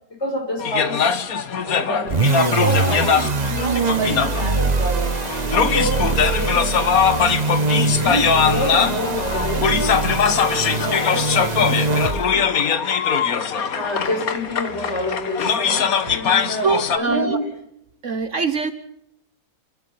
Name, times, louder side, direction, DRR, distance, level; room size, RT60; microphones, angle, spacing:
voice 1, 0.2-1.2 1.6-5.1 5.7-6.7 7.9-9.7 10.7-12.4 13.7-17.5, left 1 dB, 40° left, 2 dB, 5.9 m, -28 dB
sound 1, 0.6-17.0, left 6 dB, 60° left, 1.7 m, -21 dB
sound 2, 2.1-12.5, right 4 dB, 35° right, 0.8 m, -23 dB
voice 2, 16.6-17.4 18.0-18.7, right 5 dB, 50° right, 10 dB, 1.4 m, -23 dB
29.0 x 12.0 x 8.6 m, 0.78 s
omnidirectional pair, 1.7 m